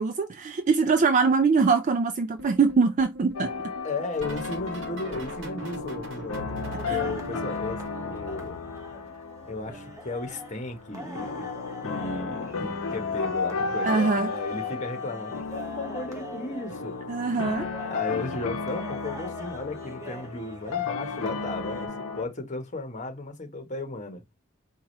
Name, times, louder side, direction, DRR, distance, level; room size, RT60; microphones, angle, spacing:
voice 1, 0.0-3.5 6.9-7.0 13.8-14.3 17.1-17.7, right 4 dB, 35° right, 0.3 m, -23 dB
sound 1, 2.4-9.2 9.4-11.0 12.0-12.4 12.6-13.0 14.5-14.8 15.1-15.4 16.9-17.0, right 1 dB, 60° right, 1.0 m, -43 dB
sound 2, 3.3-22.2, left 5 dB, 75° left, 0.7 m, -34 dB
voice 2, 3.8-8.6 9.5-11.5 11.8-17.0 17.8-21.9 22.1-24.2, left 2 dB, 35° left, 1.0 m, -35 dB
sound 3, 6.6-21.9, equal, 15° right, 0.8 m, -44 dB
4.7 x 2.3 x 4.2 m
head